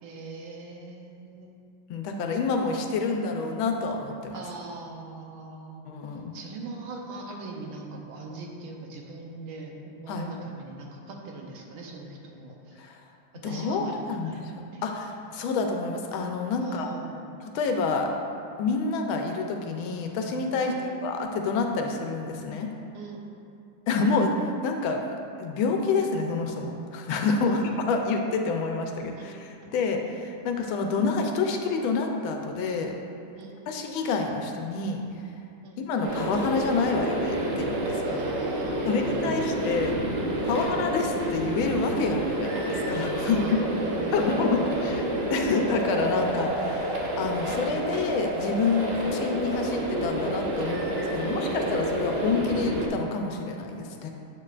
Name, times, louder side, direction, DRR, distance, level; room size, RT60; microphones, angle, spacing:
voice 1, 0.0-1.6 4.3-5.8 6.3-13.0 13.4-13.9 14.2-14.4 14.7-14.8 16.6-17.3 20.6-21.0 22.9-23.2 27.5-27.7 29.2-29.3 33.4-33.5 35.6-35.8 38.0-39.6 40.5-40.8 43.2-45.0 48.9-49.2 50.6-50.9 51.1-51.7, right 3 dB, 90° right, 0 dB, 1.6 m, -41 dB
voice 2, 1.9-4.4 5.9-6.3 10.1-10.3 12.8-13.0 13.4-16.9 17.4-18.1 18.6-20.8 21.0-22.7 23.9-25.0 25.4-29.3 29.7-32.9 33.7-35.0 35.8-38.2 38.8-39.9 40.4-43.6 44.1-45.0 45.3-50.8 51.1-54.1, left 4 dB, 90° left, 3 dB, 1.5 m, -28 dB
sound 1, 36.0-52.9, right 1 dB, 55° right, 0.7 m, -29 dB
7.8 x 6.7 x 2.4 m, 2.5 s
omnidirectional pair, 2.2 m